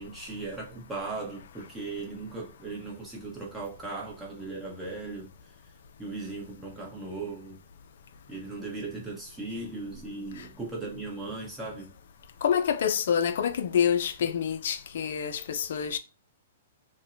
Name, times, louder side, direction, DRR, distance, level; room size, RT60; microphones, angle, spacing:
voice 1, 0.0-5.7 6.0-7.6 8.3-11.9, right 3 dB, 10° right, 1.0 m, -38 dB
voice 2, 12.4-16.0, left 8 dB, 65° left, 0.3 m, -27 dB
2.5 x 2.1 x 2.6 m
hypercardioid pair, 125°, 0 cm